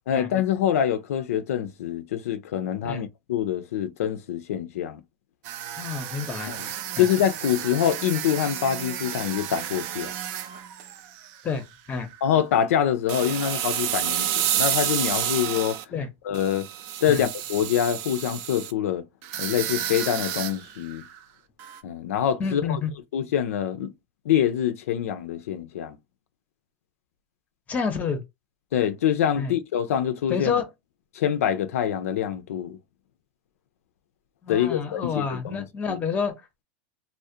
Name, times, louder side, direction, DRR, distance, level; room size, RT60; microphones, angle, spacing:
voice 1, 0.1-5.0 6.5-6.7 7.0-10.1 12.2-15.8 16.2-16.7 17.0-19.0 19.4-21.0 21.8-22.8 23.1-23.9 24.3-26.0 28.7-30.5 31.1-32.8 34.5-36.0, left 9 dB, 90° left, 0.4 m, -25 dB
sound 1, 5.4-11.6 11.9-12.2 13.1-15.8 16.3-18.7 19.2-21.2 21.6-21.8, right 11 dB, 55° right, 0.4 m, -30 dB
voice 2, 5.8-6.5 7.0-7.1 11.4-12.1 15.9-16.1 17.1-17.2 22.4-22.9 27.7-28.2 29.4-29.5 30.3-30.7 34.4-36.3, left 6 dB, 20° left, 0.6 m, -28 dB
2.4 x 2.0 x 2.6 m
supercardioid pair, 135°, 8 cm